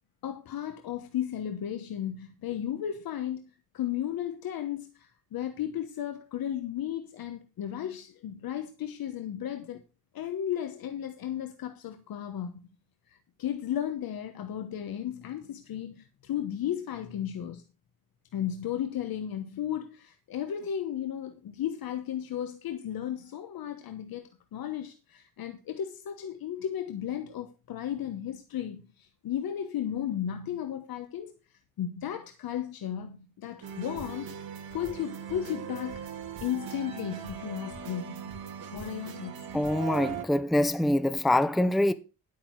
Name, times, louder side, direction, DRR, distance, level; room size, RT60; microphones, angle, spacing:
voice 1, 0.2-9.8 10.1-12.5 13.1-17.6 18.3-31.3 31.8-34.3 34.7-36.0 36.4-38.3 38.7-39.5, left 10 dB, 75° left, 1.2 m, -34 dB
sound 1, 33.6-40.2, right 8 dB, 85° right, 3.0 m, -39 dB
voice 2, 39.5-41.9, left 1 dB, ahead, 0.5 m, -25 dB
11.0 x 8.7 x 4.6 m
wide cardioid pair, 155°, 35 cm